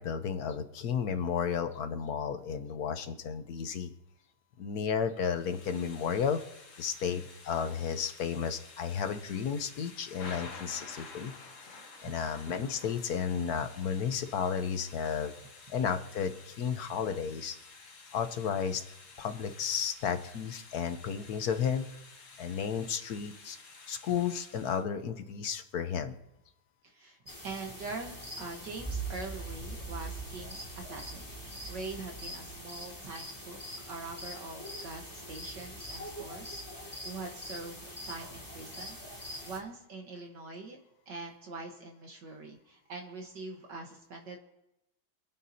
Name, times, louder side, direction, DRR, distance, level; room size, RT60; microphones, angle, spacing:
voice 1, 0.0-3.9 4.6-6.4 6.8-11.3 11.6-11.8 12.0-15.3 15.7-17.6 18.1-18.8 19.2-21.9 22.4-23.6 23.9-26.2, left 7 dB, 65° left, 8 dB, 1.0 m, -33 dB
Thunder / Rain, 5.3-24.8, left 4 dB, 40° left, 1.5 m, -51 dB
voice 2, 26.8-27.2 27.4-33.6 33.9-40.8 41.1-44.4, right 3 dB, 55° right, 2 dB, 1.8 m, -43 dB
sound 1, 27.3-39.6, right 1 dB, 10° left, 2.0 m, -42 dB
27.0 x 9.3 x 2.8 m, 0.87 s
omnidirectional pair, 2.4 m